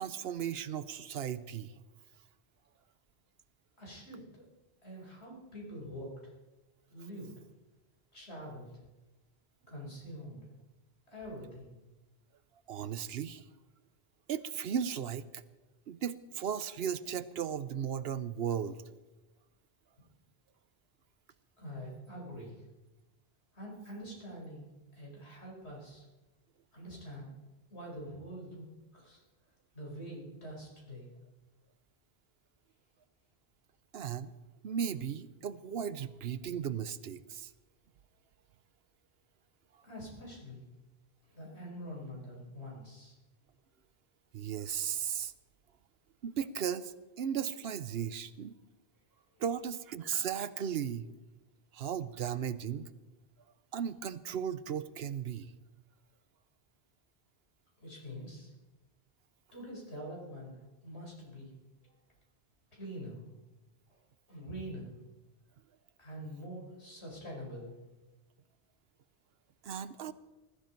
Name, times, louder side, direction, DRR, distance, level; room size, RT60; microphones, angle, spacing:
voice 1, 0.0-1.7 12.7-13.4 14.3-15.4 15.9-18.8 33.9-34.3 34.6-37.5 44.3-45.3 46.2-48.6 49.4-51.1 51.7-52.9 53.7-55.5 69.6-70.1, right 8 dB, 70° right, 15 dB, 0.9 m, -36 dB
voice 2, 3.8-4.4 4.8-6.1 6.9-7.3 8.1-8.7 9.7-10.4 11.1-11.7 21.6-22.7 23.5-26.0 26.7-27.3 27.7-28.6 28.9-29.2 29.7-31.1 39.8-40.6 41.3-43.2 57.8-58.5 59.5-61.6 61.8-61.9 62.7-63.2 63.9-64.0 64.3-64.9 66.0-67.8, equal, 90° left, -3 dB, 5.6 m, -45 dB
20.0 x 14.0 x 4.5 m, 1.1 s
omnidirectional pair, 1.1 m